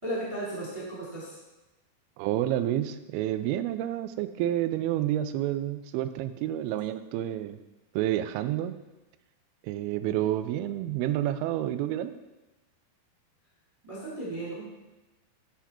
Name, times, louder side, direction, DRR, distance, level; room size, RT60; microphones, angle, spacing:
voice 1, 0.0-1.4 13.8-14.6, right 1 dB, 10° right, -6 dB, 1.8 m, -35 dB
voice 2, 2.2-7.6 7.9-8.8 9.6-12.1, right 12 dB, 85° right, 10 dB, 2.2 m, -29 dB
12.5 x 5.8 x 4.4 m, 1.1 s
omnidirectional pair, 5.0 m